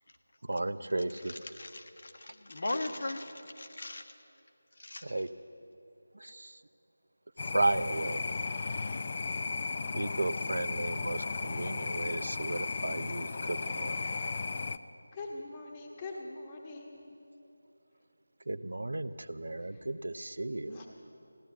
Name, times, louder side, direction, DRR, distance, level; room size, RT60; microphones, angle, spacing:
voice 1, 0.4-1.3 5.0-5.3 6.1-6.6 7.4-8.3 9.8-14.0 18.5-20.8, right 2 dB, 70° right, 13 dB, 0.6 m, -34 dB
voice 2, 1.3-4.1 4.8-5.2, left 2 dB, 55° left, 6 dB, 1.3 m, -39 dB
sound 1, 7.4-14.8, left 4 dB, 35° left, 0.4 m, -35 dB
voice 3, 15.1-17.1 20.7-20.9, left 2 dB, 20° left, -1 dB, 1.2 m, -43 dB
15.5 x 11.0 x 8.3 m, 2.8 s
figure-of-eight pair, 165°, 0 cm